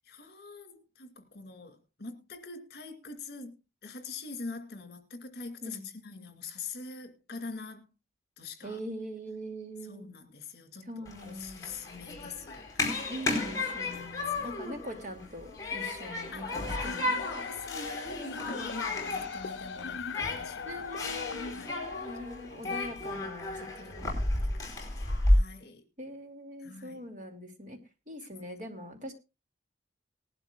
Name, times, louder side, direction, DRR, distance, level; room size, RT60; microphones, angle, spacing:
voice 1, 0.0-7.9 8.4-8.8 9.8-13.2 13.6-14.5 16.3-16.6 17.0-21.1 21.5-21.9 22.5-23.3 23.6-24.2 24.5-25.8 26.6-27.0 28.3-28.5, left 4 dB, 55° left, 2.4 m, -45 dB
voice 2, 5.6-5.9 8.6-10.1 10.9-12.1 13.1-17.5 20.7-24.1 26.0-27.8 28.1-29.1, equal, 40° right, 2.6 m, -43 dB
Human group actions, 11.1-25.4, left 2 dB, 20° left, 4.5 m, -33 dB
sound 1, 16.8-22.8, left 5 dB, 85° left, 0.6 m, -40 dB
19.5 x 11.5 x 2.4 m
head